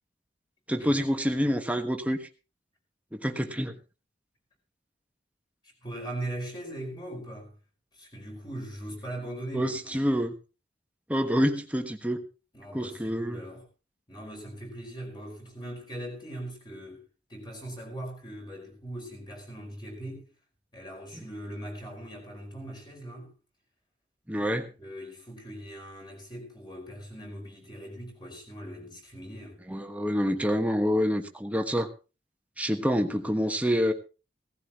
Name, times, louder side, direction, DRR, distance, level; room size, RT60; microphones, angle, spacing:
voice 1, 0.7-2.3 3.1-3.7 9.5-10.3 11.1-12.2 12.7-13.4 24.3-24.7 29.7-31.9 32.6-33.9, equal, 10° right, 1.3 m, -27 dB
voice 2, 5.6-7.5 7.9-10.0 12.5-13.6 14.1-20.3 20.7-23.3 24.4-29.6, right 1 dB, 25° left, 5.1 m, -40 dB
17.0 x 15.0 x 3.0 m
head